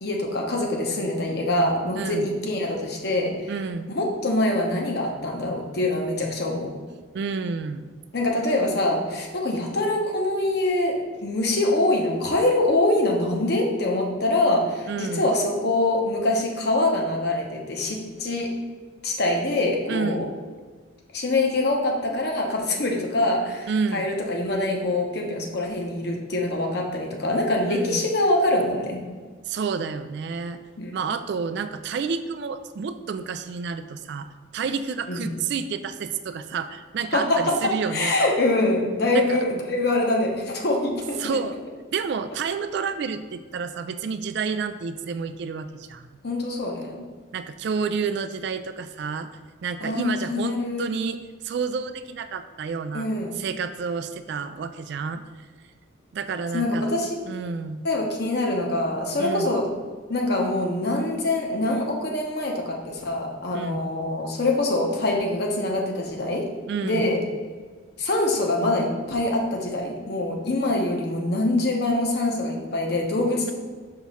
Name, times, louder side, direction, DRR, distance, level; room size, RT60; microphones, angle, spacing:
voice 1, 0.0-3.5 3.9-6.7 8.1-18.5 19.0-20.3 21.1-29.0 30.8-30.9 35.1-35.3 37.1-41.2 46.2-47.1 49.8-50.9 52.9-53.4 56.5-57.1 57.8-59.7 60.1-66.5 66.8-67.2 68.0-73.5, left 2 dB, 55° left, 0 dB, 1.0 m, -24 dB
voice 2, 2.0-2.3 3.5-3.9 7.1-7.8 14.9-15.3 19.9-20.3 23.7-24.1 27.7-28.0 29.4-30.6 30.9-34.3 34.5-38.2 39.1-39.4 41.2-41.6 41.9-46.1 47.3-49.3 49.6-53.1 53.4-55.2 56.1-56.9 57.3-57.9 59.2-59.5 63.5-63.9 66.7-67.1, right 5 dB, 60° right, 11 dB, 0.3 m, -30 dB
5.7 x 3.0 x 5.6 m, 1.5 s
head